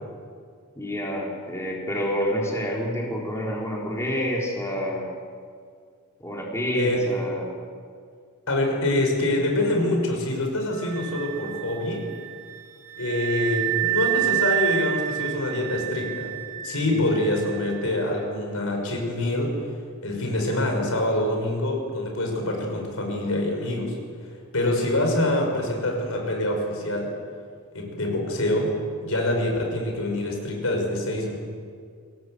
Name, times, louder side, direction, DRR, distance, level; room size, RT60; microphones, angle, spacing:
voice 1, 0.8-5.1 6.2-7.5 16.9-17.1, equal, 15° left, -3 dB, 3.9 m, -28 dB
voice 2, 6.7-7.1 8.5-12.1 13.0-16.4 16.6-19.6 20.0-24.0 24.5-27.1 27.7-28.7 29.0-31.3, left 1 dB, 70° left, 2 dB, 6.1 m, -25 dB
Wind instrument woodwind instrument, 10.7-18.1, right 15 dB, 65° right, 3.5 m, -29 dB
27.5 x 18.5 x 7.9 m, 2.1 s
head